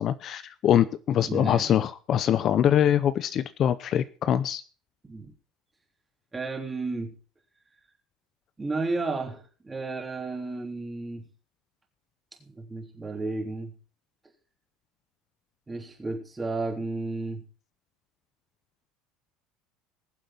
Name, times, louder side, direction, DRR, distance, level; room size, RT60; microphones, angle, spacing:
voice 1, 0.0-4.6, left 10 dB, 45° left, 15 dB, 0.6 m, -23 dB
voice 2, 1.2-1.7 5.0-5.3 6.3-7.2 8.6-11.3 12.4-13.7 15.7-17.5, right 3 dB, 15° right, 2 dB, 3.3 m, -33 dB
21.0 x 7.6 x 4.3 m, 0.37 s
cardioid pair, 125°, 0 cm